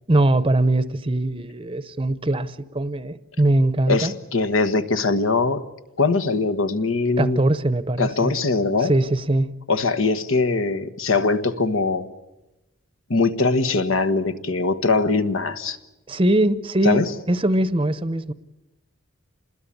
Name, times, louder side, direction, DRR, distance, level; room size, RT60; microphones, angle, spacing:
voice 1, 0.1-4.1 7.2-8.3 8.8-9.5 16.1-18.3, right 1 dB, 25° right, 0.8 m, -21 dB
voice 2, 3.9-5.6 6.0-7.4 8.0-8.9 9.7-12.1 13.1-15.8 16.8-17.1, left 3 dB, 70° left, 1.4 m, -21 dB
27.0 x 20.5 x 8.6 m
head